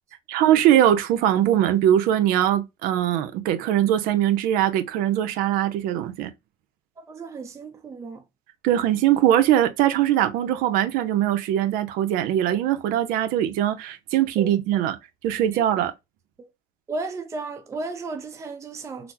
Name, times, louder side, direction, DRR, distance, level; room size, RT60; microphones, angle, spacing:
voice 1, 0.3-6.3 8.6-15.0 15.2-15.9, right 11 dB, 75° right, 0.6 m, -21 dB
voice 2, 7.0-8.2 14.4-14.5 15.5-15.6 16.4-16.5 16.9-19.1, right 3 dB, 20° right, 0.5 m, -34 dB
3.9 x 2.0 x 2.8 m
cardioid pair, 130°, 15 cm